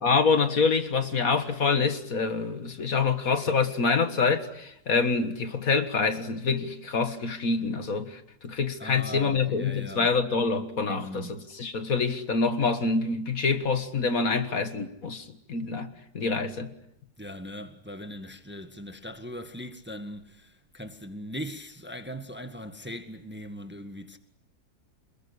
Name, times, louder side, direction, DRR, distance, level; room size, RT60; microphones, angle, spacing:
voice 1, 0.0-15.9 16.1-16.7, left 4 dB, 60° left, 2.1 m, -26 dB
voice 2, 8.8-10.1 10.9-11.4 17.2-24.2, equal, 5° right, 1.6 m, -39 dB
27.5 x 21.0 x 9.9 m
omnidirectional pair, 1.7 m